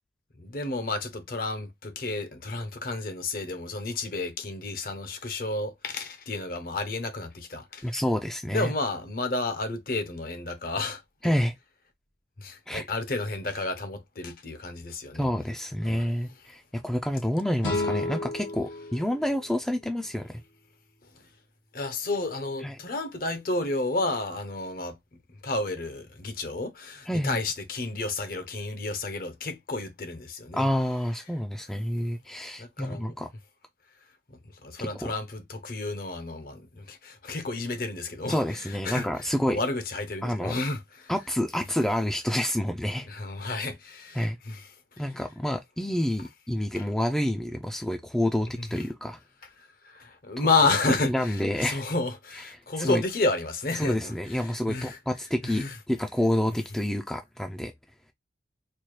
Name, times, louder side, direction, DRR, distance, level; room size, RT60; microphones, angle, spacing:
voice 1, 0.4-8.0 8.5-11.3 12.4-15.3 15.8-16.1 21.1-21.3 21.7-25.0 25.4-30.7 32.6-33.2 34.5-41.1 43.1-44.7 46.8-46.9 48.6-48.8 49.6-55.0 55.4-55.8, left 3 dB, 50° left, 0.7 m, -31 dB
voice 2, 7.8-8.7 11.2-11.5 12.7-12.9 15.2-20.4 22.6-22.8 27.1-27.4 30.5-33.3 34.8-35.1 38.3-39.6 40.2-40.5 41.1-43.1 44.2-44.4 45.0-49.2 50.4-50.5 51.1-51.8 52.8-53.0 53.8-57.7, left 1 dB, 5° left, 0.3 m, -28 dB
sound 1, 17.6-20.6, left 2 dB, 90° left, 1.2 m, -33 dB
4.3 x 2.2 x 3.1 m
head